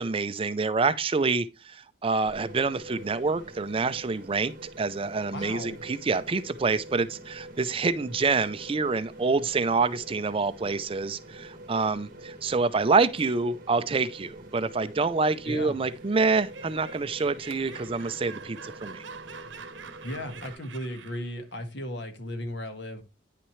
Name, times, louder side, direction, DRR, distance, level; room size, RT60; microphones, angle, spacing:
voice 1, 0.0-19.0, right 4 dB, 30° right, 0.4 m, -27 dB
sound 1, 2.2-20.5, right 1 dB, 45° right, 1.6 m, -46 dB
voice 2, 5.3-5.8 15.4-15.8 20.0-23.0, left 1 dB, 65° left, 1.6 m, -36 dB
Laughter, 15.9-21.4, right 5 dB, 75° right, 1.0 m, -45 dB
9.7 x 5.9 x 3.1 m
head